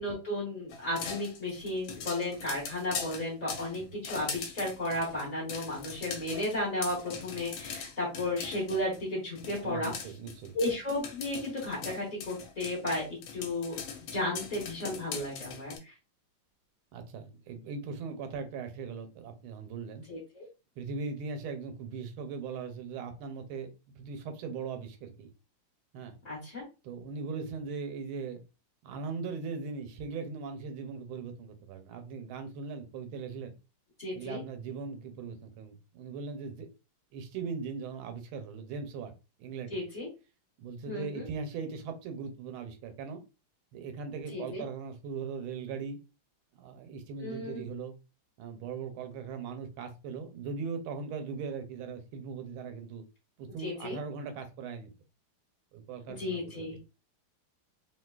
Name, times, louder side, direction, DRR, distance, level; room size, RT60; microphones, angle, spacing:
voice 1, 0.0-9.9 10.5-13.1 13.3-15.9 20.1-20.5 26.2-26.6 34.0-34.4 39.7-40.1 40.9-41.3 44.3-44.6 47.2-47.6 53.6-54.0 56.2-56.8, left 1 dB, 35° left, 0.7 m, -34 dB
sound 1, 0.7-9.0 9.4-15.8, left 6 dB, 75° left, 1.4 m, -41 dB
voice 2, 9.6-10.5 16.9-20.0 20.8-23.7 24.0-25.3 25.9-26.2 26.8-28.4 28.8-33.5 34.1-36.7 37.1-39.1 39.4-39.8 40.6-43.2 43.7-46.0 46.5-47.9 48.4-53.0 53.4-54.9 55.7-56.8, right 5 dB, 80° right, 1.4 m, -39 dB
3.3 x 2.7 x 2.2 m
omnidirectional pair, 2.3 m